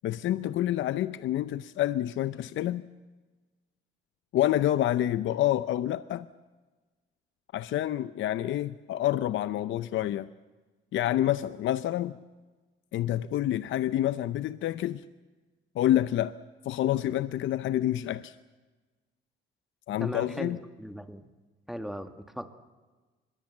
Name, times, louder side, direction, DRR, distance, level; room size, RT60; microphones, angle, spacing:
voice 1, 0.0-2.8 4.3-6.3 7.5-10.3 10.9-12.2 12.9-15.0 15.7-16.3 16.6-18.4 19.9-20.6, left 13 dB, 75° left, 14 dB, 0.7 m, -28 dB
voice 2, 20.0-21.2 21.7-22.5, equal, ahead, 8 dB, 1.9 m, -38 dB
25.0 x 21.0 x 7.4 m, 1.3 s
cardioid pair, 90°, 20 cm